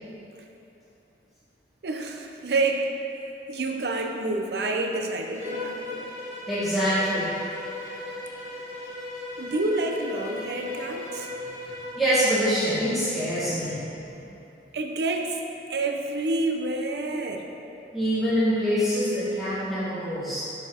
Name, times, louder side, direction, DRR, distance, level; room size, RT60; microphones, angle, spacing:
voice 1, 1.8-2.9 3.5-6.1 9.4-11.3 14.7-15.4 15.7-17.5, right 2 dB, 65° right, 3 dB, 0.5 m, -28 dB
Bowed string instrument, 5.3-12.1, left 2 dB, 40° left, 1.0 m, -37 dB
voice 2, 6.5-7.4 12.0-14.2 17.9-20.4, equal, ahead, -12 dB, 1.1 m, -25 dB
6.9 x 4.4 x 3.6 m, 2.9 s
head